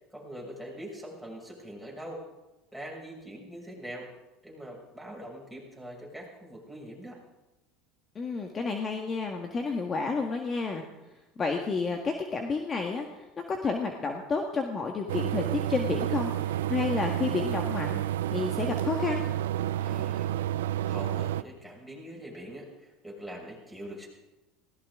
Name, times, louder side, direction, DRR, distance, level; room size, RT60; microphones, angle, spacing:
voice 1, 0.1-2.2 2.7-4.1 4.4-7.2 19.8-24.1, equal, ahead, -3 dB, 6.7 m, -43 dB
voice 2, 8.1-10.8 11.4-18.0 18.3-19.3, left 4 dB, 30° left, 3 dB, 1.7 m, -30 dB
sound 1, 15.1-21.4, right 12 dB, 90° right, 0.5 m, -30 dB
18.5 x 17.0 x 3.8 m, 1.0 s
supercardioid pair, 95°, 0 cm